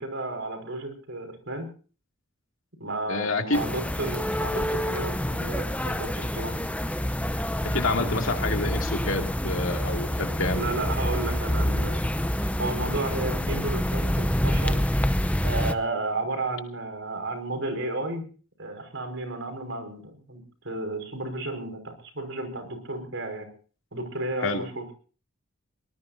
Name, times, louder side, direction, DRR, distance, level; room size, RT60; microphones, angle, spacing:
voice 1, 0.0-1.7 2.8-6.6 10.5-12.0 12.6-14.8 15.4-18.2 18.6-20.0 20.3-23.5 23.9-24.9, right 2 dB, 60° right, 6 dB, 5.5 m, -32 dB
voice 2, 3.1-3.6 7.6-10.6 24.4-24.6, left 3 dB, 65° left, 4 dB, 2.6 m, -28 dB
sound 1, 3.5-15.7, equal, 5° left, 0.8 m, -27 dB
24.0 x 19.5 x 2.8 m, 0.39 s
head